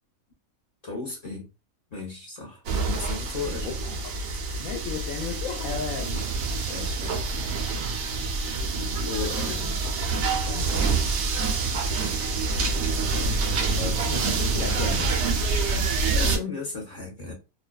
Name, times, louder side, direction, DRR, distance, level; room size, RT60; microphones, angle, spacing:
voice 1, 0.8-1.5 1.9-2.6 2.9-3.7 6.7-7.2 9.0-9.8 16.1-17.3, left 4 dB, 40° left, 0.6 m, -35 dB
sound 1, 2.7-16.4, right 4 dB, 65° right, 0.7 m, -26 dB
voice 2, 3.6-4.1 4.6-6.2 9.1-9.6 10.5-11.1 13.7-15.2, left 6 dB, 70° left, 1.0 m, -35 dB
2.5 x 2.2 x 2.2 m
omnidirectional pair, 1.5 m